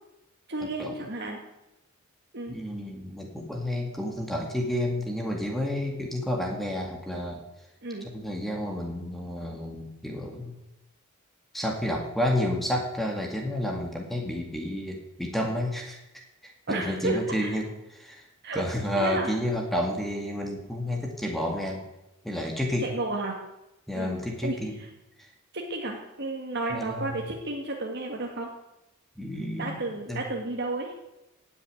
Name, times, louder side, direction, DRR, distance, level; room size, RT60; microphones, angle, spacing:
voice 1, 0.5-1.4 2.3-2.5 7.8-8.1 16.7-17.6 18.4-18.6 19.0-19.3 22.8-23.4 23.9-24.1 24.4-24.9 25.5-28.5 29.6-30.9, right 2 dB, 50° right, 0 dB, 2.0 m, -32 dB
voice 2, 2.5-7.4 8.1-10.5 11.5-16.0 16.7-18.2 18.5-21.9 22.2-22.9 23.9-24.8 25.2-25.3 26.7-27.2 29.2-29.8 30.1-30.2, left 1 dB, ahead, 0 dB, 2.1 m, -30 dB
17.0 x 7.0 x 9.2 m, 0.94 s
head